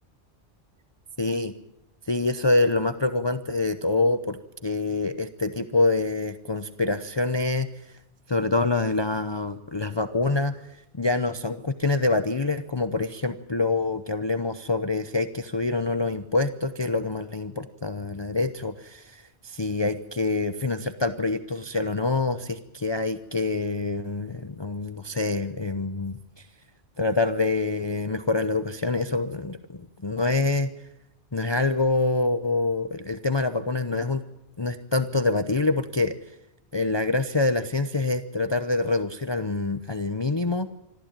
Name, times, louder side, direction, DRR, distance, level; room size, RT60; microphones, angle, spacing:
voice 1, 1.2-1.5 2.1-7.7 8.3-10.5 11.0-17.5 17.8-26.2 27.0-30.7 31.3-34.2 34.6-36.1 36.7-40.7, left 3 dB, 25° left, 9 dB, 0.8 m, -26 dB
25.0 x 15.0 x 9.0 m, 0.86 s
omnidirectional pair, 1.2 m